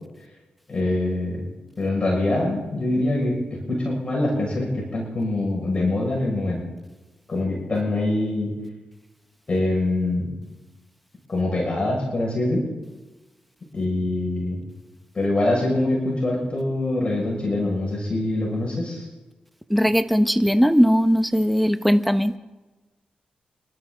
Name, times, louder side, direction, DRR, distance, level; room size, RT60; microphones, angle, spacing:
voice 1, 0.7-1.5 1.8-3.4 3.7-6.6 7.3-8.5 9.5-10.3 11.3-12.7 13.7-14.6 15.1-19.1, left 2 dB, 35° left, -2 dB, 6.2 m, -24 dB
voice 2, 19.7-22.4, equal, ahead, 10 dB, 1.1 m, -19 dB
28.5 x 12.5 x 3.9 m, 1.2 s
cardioid pair, 65°, 3 cm